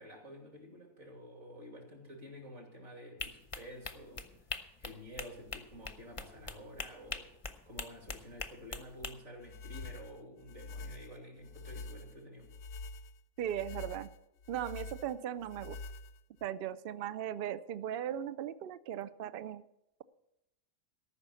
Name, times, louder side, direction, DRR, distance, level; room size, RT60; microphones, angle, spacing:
voice 1, 0.0-7.3 7.7-12.5, equal, 50° right, 1 dB, 3.1 m, -50 dB
sound 1, 3.2-9.1, left 4 dB, 30° left, 0.6 m, -42 dB
sound 2, 9.4-16.5, left 3 dB, 65° left, 0.7 m, -46 dB
voice 2, 13.4-14.1 14.5-15.8 16.4-19.6, right 10 dB, 90° right, 14 dB, 0.5 m, -38 dB
14.0 x 6.0 x 8.2 m, 0.87 s
omnidirectional pair, 1.6 m